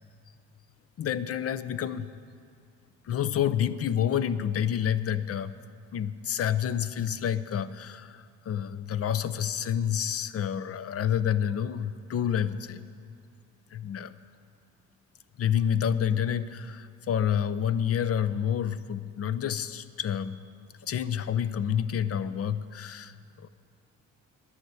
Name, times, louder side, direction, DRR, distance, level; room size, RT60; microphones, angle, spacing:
voice 1, 1.0-2.1 3.1-5.6 5.9-12.9 13.7-14.1 15.4-20.4 20.8-23.5, left 9 dB, 50° left, 13 dB, 0.6 m, -29 dB
11.5 x 10.0 x 8.1 m, 2.2 s
cardioid pair, 90°, 30 cm